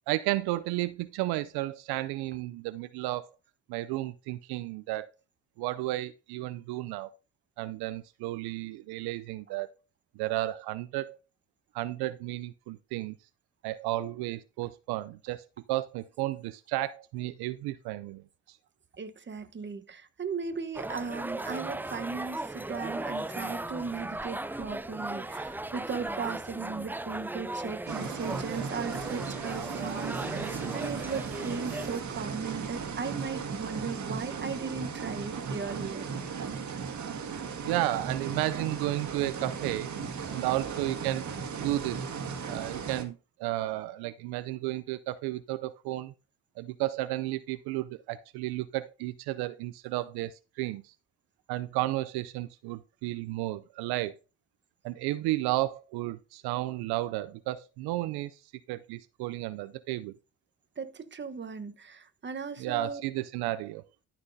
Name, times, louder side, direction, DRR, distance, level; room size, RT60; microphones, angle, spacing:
voice 1, 0.1-3.3 3.7-5.1 5.6-7.1 7.6-9.7 10.2-11.2 11.7-13.2 13.6-18.2 18.5-18.6 37.6-39.9 40.3-41.3 41.6-42.1 42.5-46.1 46.6-50.9 51.5-54.1 54.8-58.4 58.7-60.1 62.6-63.8, right 17 dB, 75° right, 0.5 m, -33 dB
voice 2, 18.9-36.1 40.3-40.4 60.8-63.0, right 5 dB, 30° right, 1.1 m, -37 dB
sound 1, 20.8-32.0, right 2 dB, 5° right, 0.4 m, -37 dB
sound 2, 27.9-43.0, right 6 dB, 50° right, 1.8 m, -36 dB
13.0 x 6.0 x 2.7 m
supercardioid pair, 65°, 38 cm